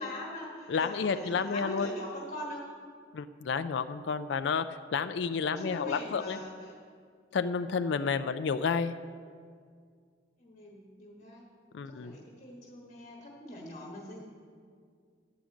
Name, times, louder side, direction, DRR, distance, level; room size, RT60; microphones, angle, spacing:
voice 1, 0.0-2.7 5.6-6.8 10.4-11.4 11.8-14.2, left 1 dB, 40° left, -3 dB, 1.3 m, -42 dB
voice 2, 0.7-1.9 3.1-4.7 4.9-6.4 7.3-8.9 11.7-12.1, left 5 dB, 65° left, 10 dB, 0.4 m, -30 dB
11.5 x 5.0 x 8.2 m, 2.1 s
head